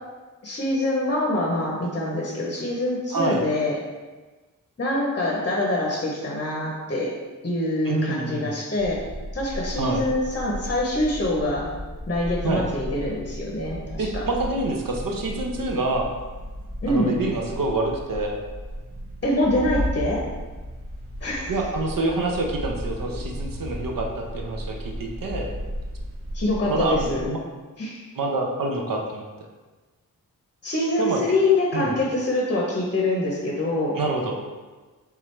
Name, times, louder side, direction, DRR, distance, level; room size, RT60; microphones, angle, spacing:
voice 1, 0.4-3.8 4.8-7.2 7.4-9.0 9.3-11.7 12.1-14.2 16.8-17.2 19.2-20.2 21.2-21.5 26.3-27.3 27.8-28.0 30.6-34.0, left 2 dB, 30° left, -3 dB, 0.7 m, -25 dB
voice 2, 3.1-3.4 7.8-8.6 9.8-10.0 12.4-12.6 14.0-16.1 16.9-18.4 21.5-25.5 26.7-27.4 28.2-29.3 31.0-31.2 31.7-31.9 34.0-34.4, right 2 dB, 75° right, 1 dB, 0.8 m, -26 dB
sound 1, 8.8-27.3, equal, 40° right, 0.7 m, -35 dB
4.5 x 3.6 x 3.2 m, 1.3 s
wide cardioid pair, 135°, 34 cm